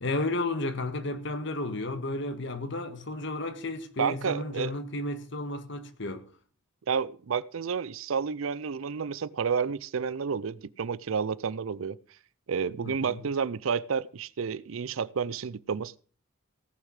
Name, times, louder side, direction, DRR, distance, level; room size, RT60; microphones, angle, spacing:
voice 1, 0.0-6.2 12.8-13.2, left 2 dB, 60° left, 1.6 m, -33 dB
voice 2, 4.0-4.7 6.9-12.0 12.5-16.0, right 6 dB, 85° right, 0.5 m, -30 dB
17.5 x 6.6 x 6.4 m
head